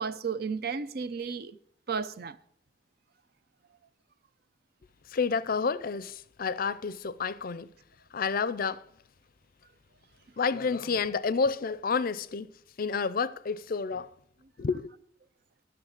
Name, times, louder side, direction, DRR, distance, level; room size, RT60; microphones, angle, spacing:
voice 1, 0.0-1.6 1.9-2.4, right 5 dB, 55° right, 0.6 m, -33 dB
voice 2, 5.1-7.7 8.1-8.9 10.4-14.1 14.6-14.9, left 5 dB, 50° left, 0.5 m, -30 dB
11.5 x 6.5 x 8.1 m
head